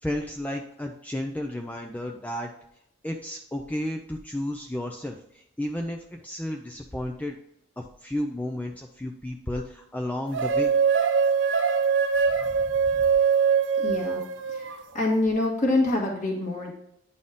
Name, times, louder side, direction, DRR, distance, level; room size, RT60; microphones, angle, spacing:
voice 1, 0.0-2.5 3.0-7.4 7.8-10.7 12.4-12.6 12.9-13.0, left 1 dB, 10° left, 3 dB, 0.4 m, -32 dB
sound 1, 10.3-14.8, right 6 dB, 65° right, 0.6 m, -23 dB
voice 2, 13.8-14.2 14.9-16.7, left 2 dB, 40° left, -2 dB, 1.6 m, -25 dB
9.1 x 4.2 x 3.6 m, 0.77 s
head